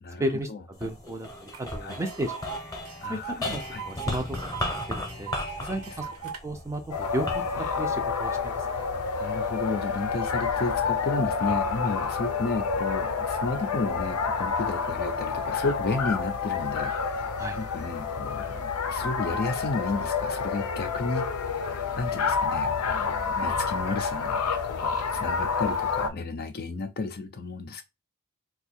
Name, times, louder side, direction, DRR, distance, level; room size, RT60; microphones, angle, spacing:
voice 1, 0.2-2.3 3.1-5.3 5.6-7.3 7.8-8.9 17.4-17.6, right 1 dB, 15° right, 0.5 m, -34 dB
sound 1, 0.7-9.2 9.8-10.5, left 1 dB, 15° left, 0.8 m, -36 dB
Tick, 1.5-1.6 1.9-6.4, right 8 dB, 70° right, 0.8 m, -39 dB
voice 2, 3.0-3.3 3.7-3.8 5.6-5.7 9.2-17.3 17.6-21.3 21.6-27.8, left 3 dB, 45° left, 0.5 m, -32 dB
sound 2, 6.9-26.1, left 5 dB, 85° left, 0.6 m, -29 dB
2.7 x 2.3 x 4.1 m
head